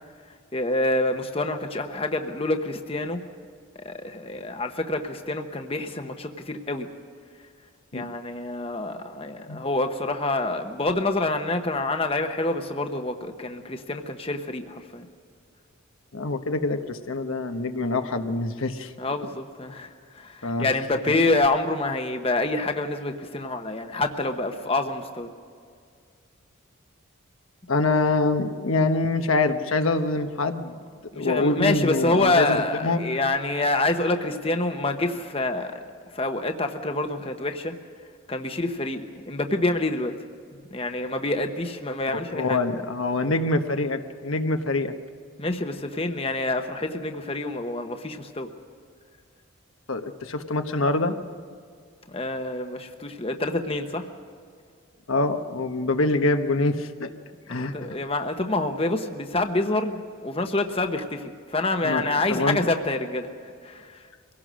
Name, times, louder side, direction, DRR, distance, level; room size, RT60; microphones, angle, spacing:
voice 1, 0.5-3.2 3.8-6.9 7.9-15.1 19.0-25.3 31.1-35.8 36.1-37.7 38.3-40.1 40.7-42.6 45.4-48.5 52.1-54.1 57.6-63.3 63.6-64.0, left 2 dB, 25° left, 6 dB, 1.0 m, -27 dB
voice 2, 16.1-18.9 20.4-20.7 27.7-30.8 31.2-32.6 32.8-33.0 42.1-45.0 49.9-51.1 55.1-57.1 57.5-57.7 61.8-62.6, left 2 dB, 75° left, 6 dB, 1.1 m, -25 dB
24.0 x 17.5 x 6.3 m, 2.1 s
head